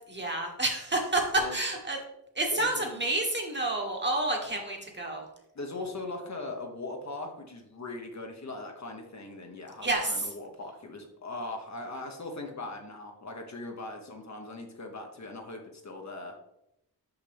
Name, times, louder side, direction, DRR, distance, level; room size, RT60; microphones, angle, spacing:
voice 1, 0.1-2.0 2.3-5.3 9.8-10.3, right 2 dB, 30° right, 1 dB, 1.4 m, -29 dB
voice 2, 2.5-3.0 5.5-16.4, left 2 dB, 45° left, 3 dB, 1.1 m, -40 dB
5.9 x 5.6 x 3.4 m, 0.82 s
wide cardioid pair, 75°, 37 cm